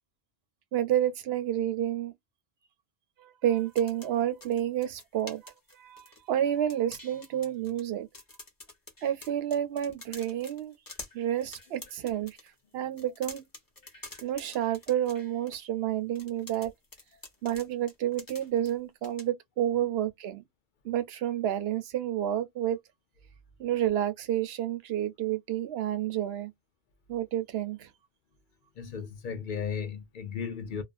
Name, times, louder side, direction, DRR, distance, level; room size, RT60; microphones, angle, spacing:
voice 1, 0.7-2.1 3.2-8.1 9.0-10.7 11.1-12.4 12.7-13.4 14.2-16.7 17.4-20.4 20.8-22.8 23.6-26.5 27.1-27.9, right 11 dB, 75° right, 0.8 m, -30 dB
sound 1, 3.6-6.4 6.7-7.9 8.1-12.5 12.9-15.6 16.1-18.7 19.0-19.2, left 2 dB, 20° left, 0.8 m, -47 dB
voice 2, 28.8-30.8, left 6 dB, 60° left, 0.6 m, -35 dB
2.4 x 2.2 x 2.4 m
omnidirectional pair, 1.1 m